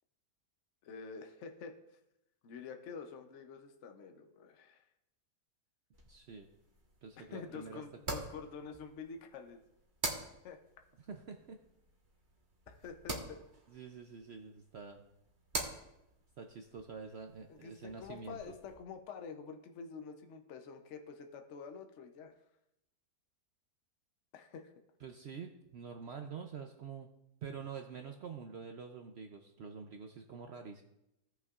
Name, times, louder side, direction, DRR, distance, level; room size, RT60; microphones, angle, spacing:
voice 1, 0.8-1.7 2.4-4.8 7.2-9.6 10.4-10.6 12.7-13.4 17.5-22.4 24.3-24.7, left 5 dB, 60° left, 5 dB, 0.8 m, -48 dB
sound 1, 5.9-18.8, right 2 dB, 35° right, 1.3 m, -46 dB
voice 2, 6.1-6.5 7.0-7.8 11.1-11.6 13.7-15.0 16.4-18.5 25.0-27.1 27.4-30.8, right 6 dB, 65° right, 4 dB, 0.6 m, -47 dB
17.0 x 5.7 x 2.4 m, 0.86 s
omnidirectional pair, 1.7 m